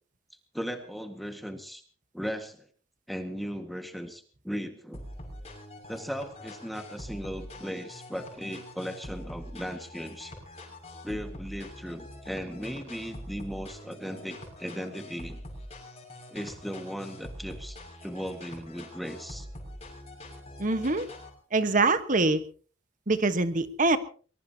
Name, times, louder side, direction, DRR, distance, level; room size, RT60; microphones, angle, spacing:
voice 1, 0.5-1.8 2.1-2.7 3.1-5.1 5.9-10.3 11.0-15.4 16.3-19.5, equal, ahead, 6 dB, 1.7 m, -37 dB
sound 1, 4.9-21.3, left 1 dB, 30° left, 6.2 m, -44 dB
voice 2, 20.6-21.1 21.5-22.4 23.1-24.0, right 3 dB, 40° right, 11 dB, 1.3 m, -24 dB
23.0 x 21.0 x 2.9 m, 0.40 s
head